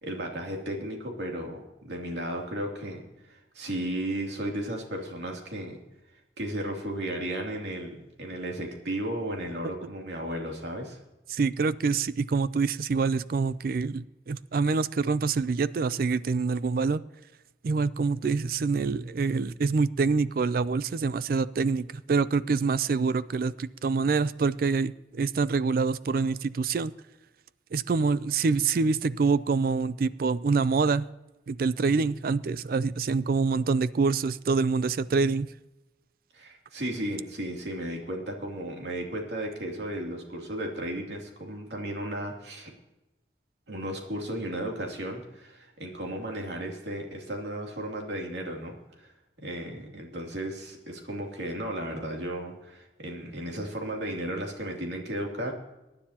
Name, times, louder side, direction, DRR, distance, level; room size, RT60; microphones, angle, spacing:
voice 1, 0.0-5.8 6.4-11.0 36.3-42.7 43.7-55.5, right 1 dB, 75° right, 0 dB, 2.8 m, -34 dB
voice 2, 11.3-17.0 17.6-26.9 27.7-31.1 31.5-35.5, right 4 dB, 55° right, 17 dB, 0.4 m, -26 dB
23.5 x 9.9 x 2.9 m, 1.0 s
head